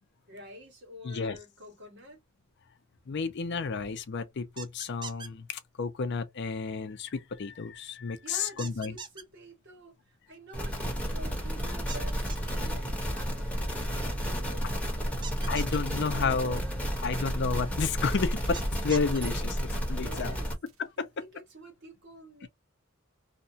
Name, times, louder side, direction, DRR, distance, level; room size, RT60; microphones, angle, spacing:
voice 1, 0.3-2.2 8.2-15.3 15.8-16.9 19.9-20.5 21.0-22.5, right 1 dB, 55° right, 1.6 m, -49 dB
voice 2, 1.0-1.4 3.1-8.9 15.5-16.6 17.0-20.3 20.8-21.1 22.4-22.5, left 5 dB, 55° left, 0.5 m, -31 dB
sound 1, 4.6-5.3 8.6-9.2 11.9-12.5 15.2-15.8 18.5-19.2, right 5 dB, 20° right, 0.4 m, -41 dB
sound 2, 10.5-20.5, equal, 5° left, 1.0 m, -32 dB
sound 3, 17.0-17.2 18.4-20.1 20.7-20.9, right 1 dB, 75° right, 1.1 m, -45 dB
2.9 x 2.2 x 2.7 m
head